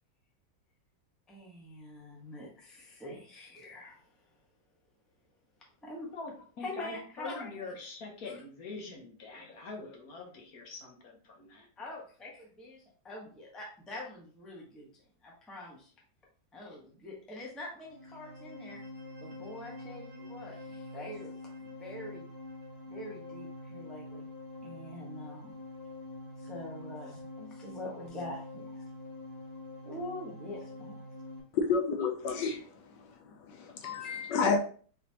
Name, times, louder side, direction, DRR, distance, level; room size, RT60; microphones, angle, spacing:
voice 1, 1.3-4.0 5.8-6.1 6.6-7.7 8.3-8.4 11.8-14.9 15.2-15.9 16.5-18.8 19.2-21.4 21.6-22.3 22.9-24.3 24.6-25.5 26.4-28.8 29.8-31.0 34.0-34.3, left 1 dB, ahead, 0.6 m, -44 dB
voice 2, 6.1-11.7, left 3 dB, 60° left, 1.2 m, -44 dB
sound 1, 17.8-31.4, left 2 dB, 30° right, 1.1 m, -45 dB
voice 3, 31.5-32.7 33.5-34.6, left 5 dB, 75° left, 1.2 m, -30 dB
4.2 x 3.3 x 2.8 m
omnidirectional pair, 2.0 m